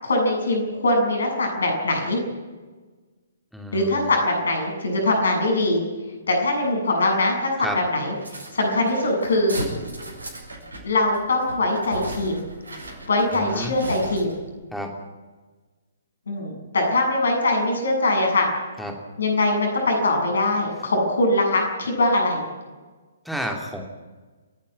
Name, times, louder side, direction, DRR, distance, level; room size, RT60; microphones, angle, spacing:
voice 1, 0.0-2.2 3.7-5.8 6.3-8.1 8.5-9.6 10.8-12.4 13.1-14.3 16.3-18.5 19.2-22.4, left 2 dB, 60° left, 3 dB, 7.3 m, -22 dB
voice 2, 3.5-4.1 7.6-7.8 13.3-13.7 14.7-14.9 18.8-19.0 23.2-23.8, equal, ahead, 1 dB, 2.9 m, -31 dB
sound 1, 8.2-14.5, right 1 dB, 70° right, 7.8 m, -36 dB
30.0 x 10.5 x 9.8 m, 1.3 s
figure-of-eight pair, 125°, 0 cm